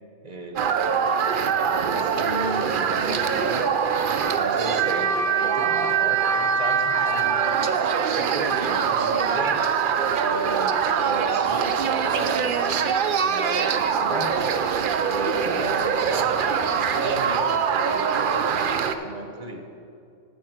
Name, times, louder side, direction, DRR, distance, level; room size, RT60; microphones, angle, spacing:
voice 1, 0.2-3.7 4.2-9.6 10.2-14.5 15.1-19.6, right 1 dB, 35° right, 3 dB, 0.8 m, -35 dB
sound 1, 0.6-18.9, right 7 dB, 80° right, 0.4 m, -23 dB
11.5 x 4.5 x 7.8 m, 2.5 s
omnidirectional pair, 1.5 m